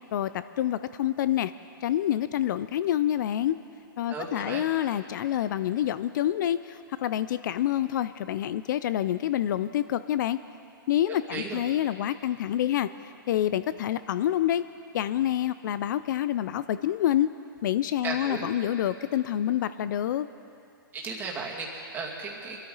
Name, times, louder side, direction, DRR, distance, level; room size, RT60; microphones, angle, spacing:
voice 1, 0.1-1.5 1.8-3.6 4.0-10.4 10.9-14.6 14.9-17.3 17.6-20.3, left 11 dB, 55° left, 14 dB, 0.4 m, -27 dB
voice 2, 4.1-4.7 11.1-11.6 18.0-18.5 20.9-22.6, right 4 dB, 15° right, -3 dB, 2.3 m, -35 dB
23.5 x 13.5 x 4.0 m, 2.5 s
hypercardioid pair, 140°, 12 cm